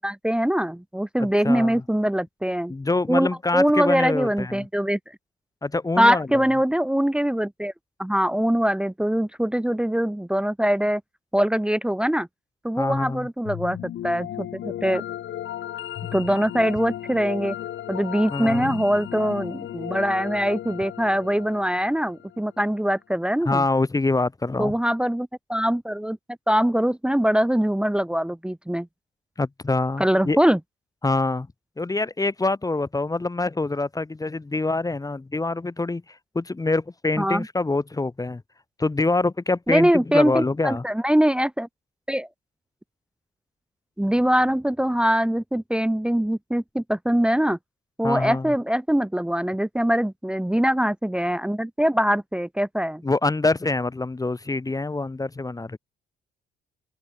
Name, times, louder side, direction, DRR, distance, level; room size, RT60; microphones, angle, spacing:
voice 1, 0.0-2.7 3.1-5.0 6.0-7.7 8.0-11.0 11.3-12.3 12.6-13.8 14.0-15.0 16.1-17.6 17.9-23.6 24.6-26.2 26.5-28.9 30.0-30.6 37.2-37.5 39.7-41.7 42.1-42.3 44.0-47.6 48.0-53.0, equal, 5° right, 1.2 m, -23 dB
voice 2, 1.2-1.8 2.7-4.7 5.6-6.4 12.8-13.3 18.3-18.8 23.4-24.7 29.4-30.4 31.0-31.5 31.8-36.0 36.3-38.4 38.8-40.8 48.0-48.5 53.0-55.8, left 3 dB, 20° left, 1.4 m, -25 dB
sound 1, 13.4-22.6, left 12 dB, 70° left, 1.8 m, -35 dB
open air
cardioid pair, 90°, 20 cm